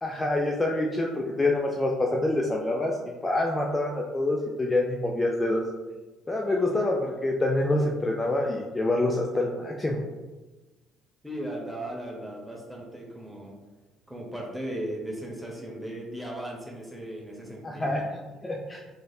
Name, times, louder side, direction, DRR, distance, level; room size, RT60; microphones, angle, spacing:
voice 1, 0.0-3.0 3.2-5.6 6.3-10.0 17.6-18.0 18.4-18.8, left 2 dB, 20° left, -1 dB, 0.4 m, -26 dB
voice 2, 11.2-13.5 14.1-18.0, right 1 dB, 5° right, -2 dB, 0.9 m, -37 dB
3.1 x 2.7 x 2.3 m, 1.2 s
hypercardioid pair, 55°, 0 cm